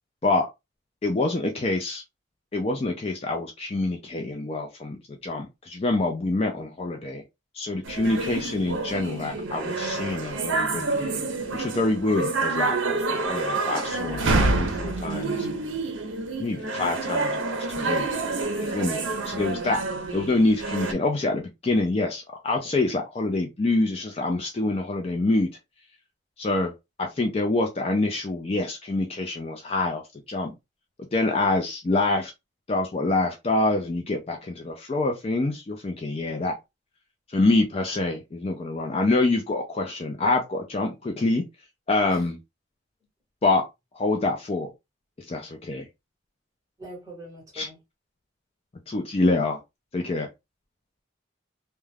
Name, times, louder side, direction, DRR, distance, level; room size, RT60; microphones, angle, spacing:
voice 1, 1.0-2.0 2.5-7.2 7.5-11.1 11.5-15.5 16.4-18.2 18.6-19.0 19.2-19.8 20.1-25.5 26.4-26.7 27.0-30.5 31.1-32.3 32.7-36.6 37.3-41.4 41.9-42.4 43.4-43.6 43.9-44.7 45.2-45.9 47.5-47.7 48.9-49.6 49.9-50.3, left 2 dB, 30° left, 0.4 m, -26 dB
sound 1, 7.8-20.9, right 3 dB, 75° right, 0.6 m, -28 dB
voice 2, 46.8-47.8, right 1 dB, 15° right, 1.1 m, -42 dB
2.3 x 2.2 x 3.2 m
head